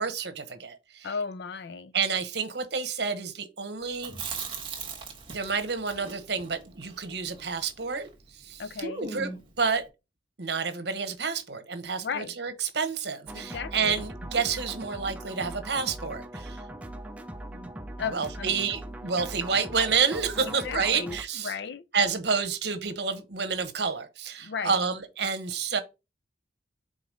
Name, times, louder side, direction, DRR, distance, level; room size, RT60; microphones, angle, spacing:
voice 1, 0.0-1.1 1.9-4.1 5.3-8.6 9.1-9.8 10.4-16.6 17.5-17.7 18.1-21.5 21.9-25.8, right 5 dB, 60° right, 1.0 m, -29 dB
voice 2, 1.0-1.9 8.6-9.1 12.0-12.3 13.3-14.0 18.0-18.5 20.4-21.8 24.4-24.8, left 6 dB, 60° left, 0.5 m, -35 dB
Chewing mastication, 3.9-8.1 8.4-8.5 8.8-9.6, right 4 dB, 30° right, 1.2 m, -38 dB
sound 1, 13.3-21.2, right 1 dB, 10° right, 0.5 m, -40 dB
4.9 x 3.9 x 5.1 m
head